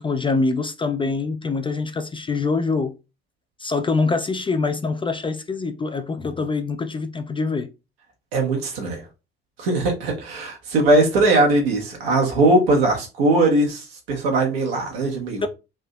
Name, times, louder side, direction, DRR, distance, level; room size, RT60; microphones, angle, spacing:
voice 1, 0.0-2.9 3.6-7.7 15.4-15.5, left 4 dB, 20° left, 0.3 m, -24 dB
voice 2, 8.3-9.0 9.6-15.5, right 2 dB, 80° right, 1.0 m, -20 dB
3.4 x 2.7 x 2.2 m
figure-of-eight pair, 45°, 30 cm